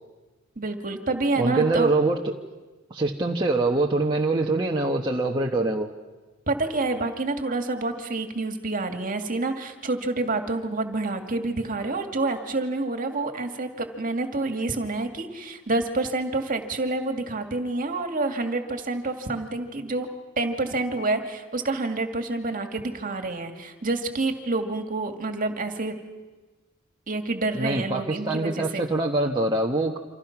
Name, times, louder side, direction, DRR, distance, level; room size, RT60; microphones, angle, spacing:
voice 1, 0.6-1.9 6.5-20.1 20.4-26.0 27.1-28.8, right 2 dB, 40° right, 5 dB, 2.2 m, -28 dB
voice 2, 1.4-2.2 2.9-5.9 27.5-30.0, right 2 dB, 20° right, 0 dB, 1.2 m, -24 dB
28.0 x 26.5 x 6.0 m, 1.2 s
head